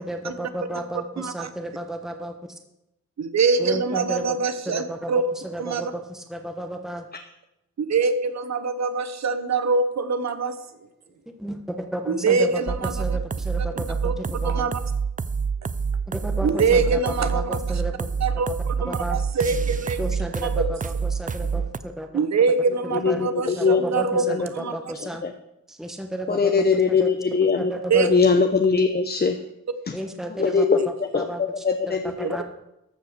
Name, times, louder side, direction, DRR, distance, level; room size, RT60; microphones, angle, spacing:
voice 1, 0.0-2.3 3.6-4.4 4.7-5.1 5.4-7.0 11.4-12.6 12.9-14.7 16.1-18.1 18.9-19.2 20.0-22.1 22.8-23.2 23.6-25.2 25.7-26.5 26.9-27.1 27.6-28.1 29.9-30.7 31.1-31.4 31.9-32.4, right 1 dB, ahead, 4 dB, 1.3 m, -32 dB
voice 2, 1.2-1.5 3.2-5.3 5.6-5.9 7.8-10.6 12.1-13.2 14.0-14.1 14.4-14.8 16.4-17.8 18.2-20.7 22.1-24.7 27.9-28.1 32.2-32.4, right 4 dB, 65° right, 11 dB, 1.0 m, -24 dB
sound 1, 12.7-21.8, right 5 dB, 30° right, 0.5 m, -27 dB
voice 3, 22.9-23.8 24.2-24.5 24.9-25.3 26.3-29.4 29.9-30.0 30.3-32.4, left 5 dB, 35° left, 6 dB, 0.8 m, -22 dB
14.0 x 5.6 x 6.7 m, 0.88 s
cardioid pair, 75°, 29 cm